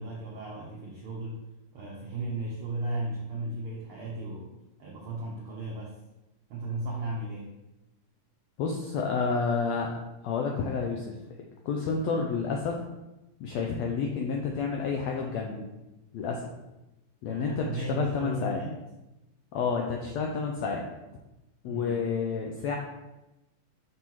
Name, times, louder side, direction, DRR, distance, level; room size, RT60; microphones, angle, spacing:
voice 1, 0.0-1.4 1.7-4.5 4.8-6.0 6.5-7.5 17.2-18.8 21.7-22.0, right 2 dB, 80° right, -3 dB, 1.2 m, -35 dB
voice 2, 8.6-10.0 10.2-11.1 11.6-12.7 13.4-15.7 16.1-16.5 17.2-18.6 19.5-20.8 21.6-22.8, left 5 dB, 85° left, 1 dB, 1.5 m, -29 dB
6.6 x 5.5 x 3.0 m, 0.97 s
omnidirectional pair, 3.7 m